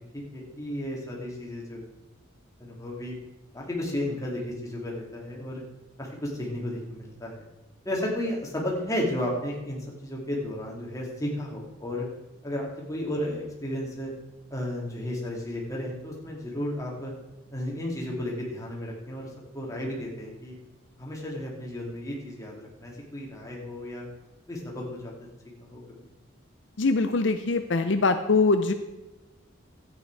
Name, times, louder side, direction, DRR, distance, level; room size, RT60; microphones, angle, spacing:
voice 1, 0.1-1.9 2.6-3.1 3.5-5.6 6.0-7.4 7.8-12.1 12.4-14.1 14.5-17.1 17.5-19.3 19.5-20.5 21.0-24.1 24.5-25.1 25.6-25.8, left 1 dB, 15° left, -2 dB, 2.6 m, -33 dB
voice 2, 26.8-28.7, left 3 dB, 65° left, 8 dB, 0.7 m, -23 dB
13.0 x 9.0 x 4.7 m, 1.1 s
head